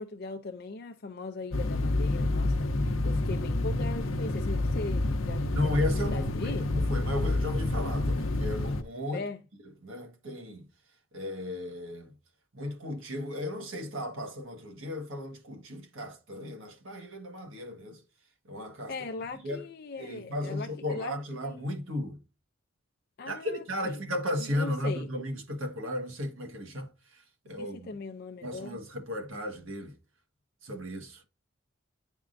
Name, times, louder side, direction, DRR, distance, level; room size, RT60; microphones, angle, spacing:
voice 1, 0.0-6.7 9.1-9.4 18.9-21.1 21.4-21.6 23.2-24.0 24.4-25.1 27.6-28.8, left 3 dB, 50° left, 0.4 m, -40 dB
sound 1, 1.5-8.8, left 2 dB, 85° left, 0.7 m, -28 dB
voice 2, 5.5-9.2 9.8-10.6 11.1-12.1 12.5-18.0 18.5-18.9 19.4-19.6 20.0-22.2 23.3-27.9 28.4-30.0 30.6-31.2, left 1 dB, 85° right, 1.3 m, -35 dB
10.5 x 3.5 x 2.5 m
head